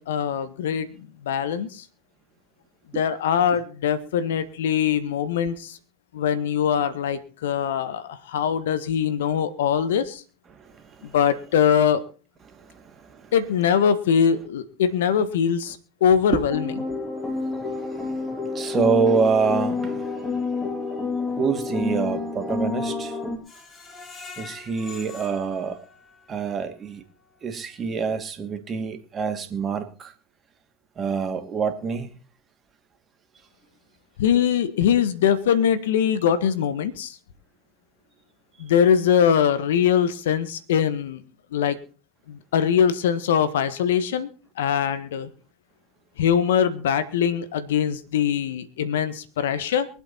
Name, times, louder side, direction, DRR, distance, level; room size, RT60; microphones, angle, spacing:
voice 1, 0.0-1.8 2.9-5.8 6.1-10.2 11.0-12.0 13.3-16.7 34.2-37.2 38.6-41.2 41.5-41.8 42.3-44.3 44.6-45.3 46.2-49.9, left 8 dB, 80° left, 1.6 m, -22 dB
voice 2, 10.5-11.2 12.5-13.3 16.2-16.4 17.2-20.5 21.3-23.2 24.4-25.8 26.3-27.0 27.4-30.1 31.0-32.2, right 5 dB, 30° right, 2.7 m, -27 dB
sound 1, 16.5-23.4, left 3 dB, 15° left, 3.7 m, -28 dB
Screech, 23.4-26.4 26.9-27.0 27.4-27.5, left 4 dB, 30° left, 6.6 m, -44 dB
23.5 x 8.0 x 4.3 m
hypercardioid pair, 90°, 0 cm